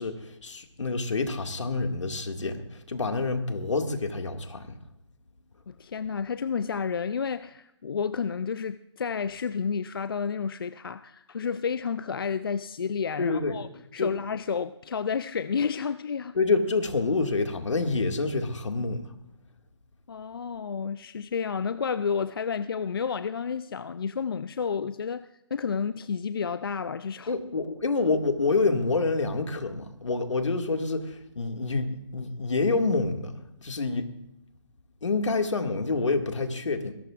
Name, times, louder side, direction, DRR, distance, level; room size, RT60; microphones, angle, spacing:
voice 1, 0.0-4.8 13.2-13.6 14.0-14.1 16.4-19.1 27.3-33.3 33.6-34.1 35.0-36.9, left 3 dB, 75° left, 2.0 m, -27 dB
voice 2, 5.7-16.4 20.1-27.4, left 6 dB, 50° left, 0.5 m, -31 dB
20.5 x 17.5 x 2.5 m
hypercardioid pair, 165°, 16 cm